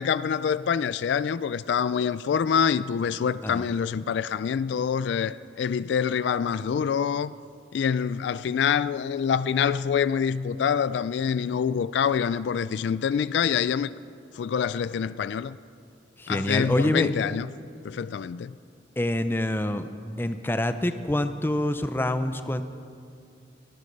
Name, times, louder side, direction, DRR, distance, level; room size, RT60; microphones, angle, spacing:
voice 1, 0.0-7.3 7.7-13.9 14.3-15.6 16.3-17.5 17.8-18.6, left 7 dB, 70° left, 0.3 m, -26 dB
voice 2, 16.2-17.1 19.0-19.9 20.2-22.6, left 1 dB, 10° left, 0.5 m, -26 dB
21.5 x 9.7 x 5.3 m
head